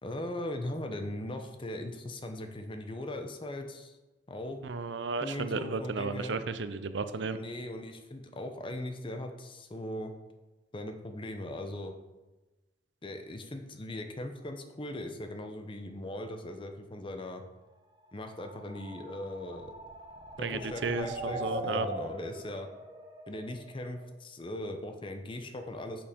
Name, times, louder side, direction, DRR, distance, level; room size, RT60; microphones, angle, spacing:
voice 1, 0.0-3.9 4.3-4.6 5.2-6.4 7.2-10.1 10.7-11.9 13.0-17.4 18.1-19.7 20.4-22.7 23.3-26.1, left 1 dB, 30° left, 6 dB, 0.7 m, -39 dB
voice 2, 4.6-7.4 20.4-21.9, right 4 dB, 75° right, 12 dB, 0.5 m, -34 dB
sound 1, 18.3-24.1, right 1 dB, 25° right, 0.9 m, -41 dB
7.0 x 5.5 x 5.1 m, 1.1 s
head